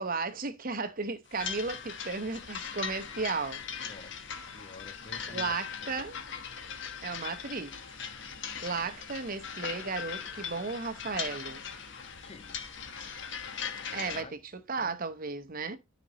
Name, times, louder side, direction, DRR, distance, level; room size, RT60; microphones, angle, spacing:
voice 1, 0.0-3.6 5.3-6.2 7.0-7.7 8.6-11.6 13.9-14.4 14.7-15.8, right 4 dB, 40° right, 0.9 m, -34 dB
sound 1, 1.3-14.2, left 7 dB, 55° left, 1.2 m, -40 dB
voice 2, 3.8-6.0 12.2-12.8 13.9-14.3 14.8-15.0, left 3 dB, 30° left, 0.5 m, -50 dB
13.0 x 5.2 x 3.0 m
head